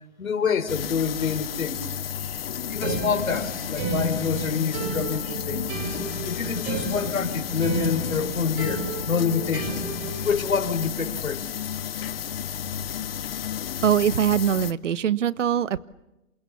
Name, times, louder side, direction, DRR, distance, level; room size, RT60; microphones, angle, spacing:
voice 1, 0.2-5.7 6.3-9.9 10.2-11.5, left 6 dB, 80° left, 8 dB, 4.2 m, -27 dB
sound 1, 0.7-14.7, left 9 dB, 45° left, 1.0 m, -32 dB
sound 2, 2.8-10.5, right 3 dB, 30° right, 7.1 m, -32 dB
voice 2, 13.8-15.8, right 9 dB, 65° right, 17 dB, 1.2 m, -22 dB
28.5 x 28.5 x 7.1 m, 0.92 s
hypercardioid pair, 160°, 40 cm